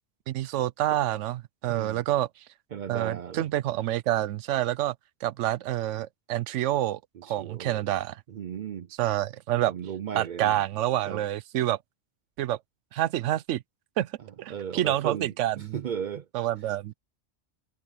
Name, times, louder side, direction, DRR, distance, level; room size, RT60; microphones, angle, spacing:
voice 1, 0.3-2.3 2.9-4.9 5.2-8.2 9.0-9.7 10.1-11.8 12.4-12.6 12.9-13.6 14.0-14.1 14.4-15.8 16.3-16.9, right 13 dB, 85° right, 0.9 m, -28 dB
voice 2, 1.7-2.0 2.7-3.5 7.3-7.8 8.3-8.9 9.7-10.6 11.1-11.2 14.5-16.2, right 8 dB, 60° right, 0.5 m, -35 dB
omnidirectional pair, 1.2 m